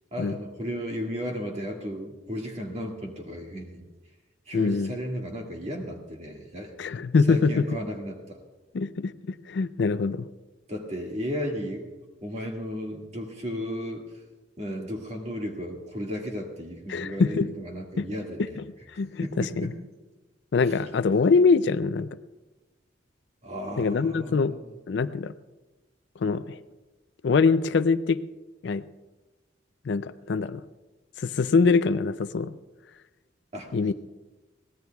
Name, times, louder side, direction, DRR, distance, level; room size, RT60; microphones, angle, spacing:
voice 1, 0.1-3.9 4.5-7.0 7.3-8.4 10.7-14.0 14.6-18.6 19.2-19.8 20.7-20.8 23.4-24.7 33.5-33.7, equal, 35° right, 1 dB, 1.9 m, -34 dB
voice 2, 4.5-4.9 6.8-7.6 8.7-10.3 16.9-17.5 18.0-18.1 18.4-18.5 18.9-19.7 20.5-22.1 23.8-24.6 24.9-25.3 26.2-26.6 27.2-28.2 28.6-28.8 29.8-30.6 31.2-32.5 33.7-33.9, left 4 dB, 65° left, 14 dB, 0.4 m, -23 dB
23.0 x 17.0 x 2.3 m, 1.2 s
head